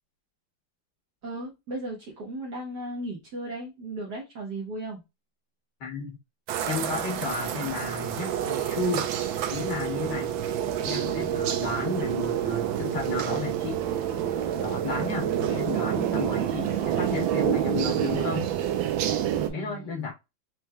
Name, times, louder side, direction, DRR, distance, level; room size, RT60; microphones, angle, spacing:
voice 1, 1.2-5.0 19.3-20.0, right 1 dB, 55° right, 1.6 m, -36 dB
voice 2, 5.8-6.2 6.7-9.1 9.5-10.3 10.8-13.8 14.6-18.5 19.5-20.1, left 4 dB, 60° left, 1.4 m, -33 dB
sound 1, 6.5-19.5, right 10 dB, 75° right, 1.3 m, -28 dB
4.3 x 3.2 x 2.2 m
omnidirectional pair, 2.3 m